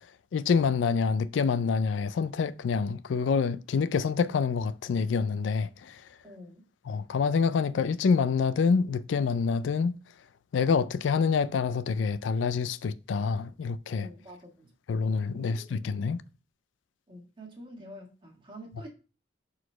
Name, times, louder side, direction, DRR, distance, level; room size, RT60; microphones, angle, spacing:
voice 1, 0.3-6.0 6.9-10.0 10.5-14.1 14.9-16.2, left 5 dB, 85° left, 0.4 m, -27 dB
voice 2, 6.2-6.6 13.9-14.7 15.3-15.9 17.1-18.9, equal, 25° right, 1.7 m, -47 dB
4.8 x 4.1 x 5.4 m
head